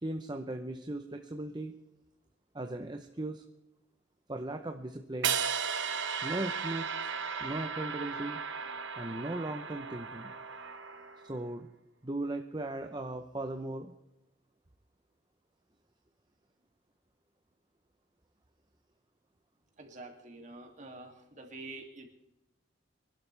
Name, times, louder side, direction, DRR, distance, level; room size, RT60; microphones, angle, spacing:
voice 1, 0.0-1.8 2.5-3.4 4.3-5.4 6.2-7.1 7.4-8.4 9.0-10.3 11.3-11.7 12.0-13.9, right 2 dB, 25° right, 5 dB, 0.8 m, -37 dB
sound 1, 5.2-11.4, right 6 dB, 70° right, 1.1 m, -35 dB
voice 2, 19.8-22.1, right 2 dB, 40° right, 2 dB, 2.6 m, -47 dB
25.0 x 12.0 x 3.4 m, 0.91 s
head